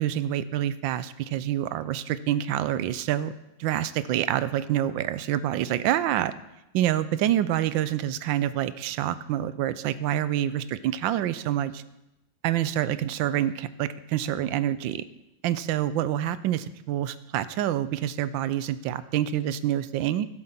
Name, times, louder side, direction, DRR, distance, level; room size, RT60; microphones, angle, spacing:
voice 1, 0.0-3.3 3.6-6.3 6.7-11.8 12.4-15.0 15.4-20.3, right 11 dB, 90° right, 15 dB, 1.3 m, -27 dB
12.0 x 7.7 x 5.8 m, 0.93 s
omnidirectional pair, 2.0 m